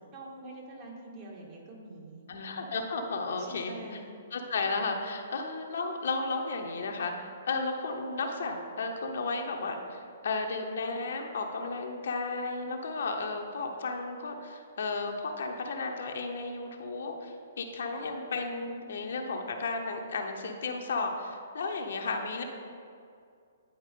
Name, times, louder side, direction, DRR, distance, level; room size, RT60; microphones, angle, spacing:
voice 1, 0.1-2.2 3.4-4.1 17.8-17.9, right 2 dB, 35° right, -2 dB, 1.7 m, -46 dB
voice 2, 2.3-3.7 4.3-22.4, left 3 dB, 65° left, 3 dB, 0.8 m, -33 dB
9.9 x 4.7 x 3.7 m, 2.4 s
figure-of-eight pair, 125°, 0 cm